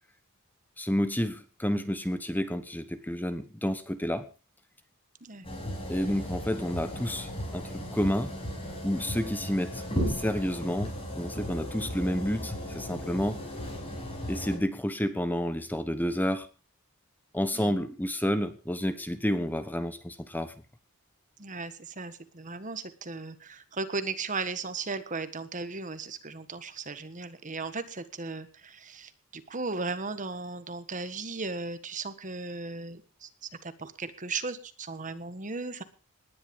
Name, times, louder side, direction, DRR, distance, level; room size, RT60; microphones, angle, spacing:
voice 1, 0.8-4.3 5.9-8.3 8.8-13.4 14.3-16.5 17.3-20.5, equal, 10° left, 11 dB, 1.1 m, -30 dB
sound 1, 5.4-14.6, equal, 25° left, 6.6 m, -36 dB
voice 2, 21.4-35.8, right 3 dB, 35° right, 12 dB, 1.5 m, -36 dB
19.0 x 11.0 x 5.4 m, 0.36 s
head